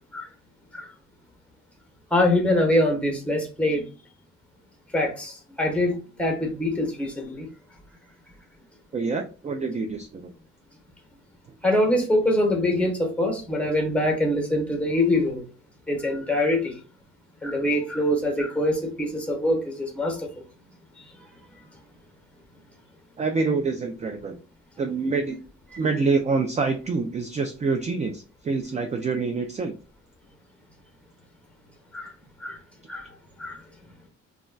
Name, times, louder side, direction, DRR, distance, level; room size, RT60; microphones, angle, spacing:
voice 1, 2.1-3.8 4.9-7.5 11.6-15.4 15.9-16.8 17.4-20.3 21.0-21.1 25.7-25.8 31.9-32.1 32.4-32.6 32.9-33.1 33.4-33.6, left 1 dB, 5° left, 1.0 m, -24 dB
voice 2, 8.9-10.3 23.2-24.4 24.8-25.4 25.8-29.7, right 4 dB, 25° right, 0.3 m, -26 dB
2.3 x 2.1 x 3.7 m
cardioid pair, 90°, 30 cm